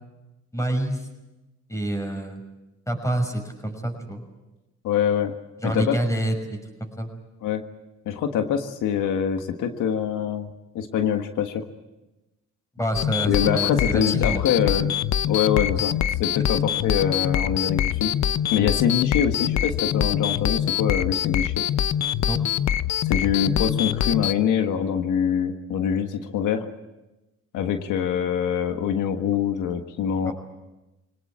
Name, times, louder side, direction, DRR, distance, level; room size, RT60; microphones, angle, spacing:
voice 1, 0.5-1.1 1.7-2.4 2.9-4.2 5.6-7.1 12.8-14.4 22.2-22.4 30.2-30.3, right 1 dB, 10° left, 4 dB, 6.1 m, -27 dB
voice 2, 4.8-5.3 5.6-6.0 7.4-7.6 8.0-10.5 10.7-11.6 13.3-14.9 15.2-18.1 18.5-21.6 23.0-26.6 27.5-30.3, left 8 dB, 90° left, 7 dB, 1.5 m, -24 dB
sound 1, 12.9-24.3, left 10 dB, 65° left, 0.8 m, -24 dB
24.0 x 18.5 x 8.7 m, 1.0 s
cardioid pair, 90°, 30 cm